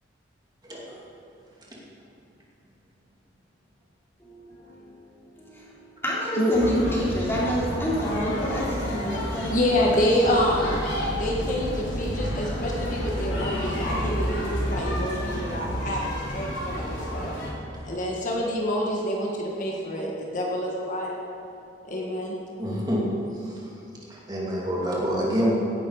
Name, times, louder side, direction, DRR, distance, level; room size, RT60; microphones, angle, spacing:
voice 1, 0.6-1.0 18.0-18.1 22.6-23.1 23.3-23.7 24.1-25.5, equal, 20° right, -5 dB, 2.7 m, -27 dB
voice 2, 4.2-4.8 5.4-9.5, equal, 15° left, -7 dB, 3.7 m, -28 dB
sound 1, 6.5-17.5, equal, 80° left, 4.0 m, -30 dB
voice 3, 9.5-10.8 11.2-17.4 17.8-21.2 21.9-22.3, left 1 dB, 45° left, -2 dB, 1.7 m, -27 dB
17.0 x 11.5 x 4.9 m, 2.6 s
head